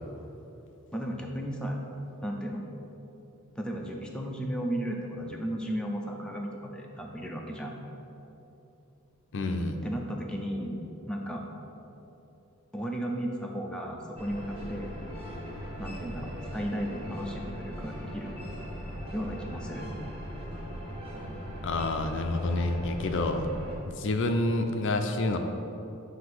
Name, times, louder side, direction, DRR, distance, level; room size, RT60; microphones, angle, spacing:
voice 1, 0.9-1.8 2.2-2.6 3.6-7.8 9.8-10.8 11.1-11.4 12.7-15.0 15.8-18.3 19.1-19.9, equal, 5° left, 0 dB, 0.5 m, -34 dB
voice 2, 9.3-9.8 21.6-23.5 24.0-25.4, left 2 dB, 60° left, 5 dB, 0.4 m, -28 dB
sound 1, 14.2-23.7, equal, 25° right, 1.3 m, -39 dB
7.6 x 2.7 x 5.9 m, 2.9 s
head